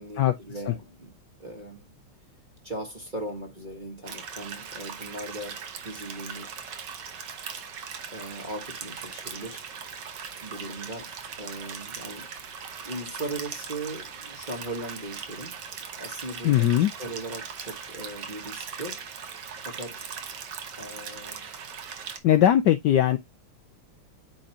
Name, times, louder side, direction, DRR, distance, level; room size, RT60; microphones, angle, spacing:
voice 1, 0.0-1.9 2.6-6.5 8.1-9.7 10.4-12.3 12.8-19.0 19.6-20.1 20.8-21.5, right 1 dB, 25° right, 1.2 m, -39 dB
sound 1, 4.0-22.2, right 6 dB, 55° right, 1.7 m, -39 dB
voice 2, 16.4-16.9 22.2-23.2, left 11 dB, 70° left, 1.1 m, -20 dB
9.1 x 4.4 x 2.8 m
omnidirectional pair, 2.4 m